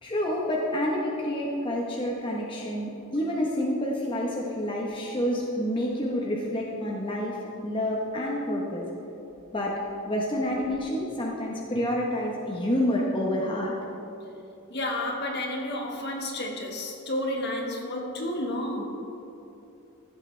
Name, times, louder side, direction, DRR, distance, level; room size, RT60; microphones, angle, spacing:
voice 1, 0.0-8.9 9.5-13.7, left 1 dB, 25° left, -3 dB, 0.9 m, -28 dB
voice 2, 14.7-18.8, left 1 dB, 50° left, 1 dB, 1.4 m, -31 dB
15.5 x 7.9 x 3.2 m, 2.9 s
head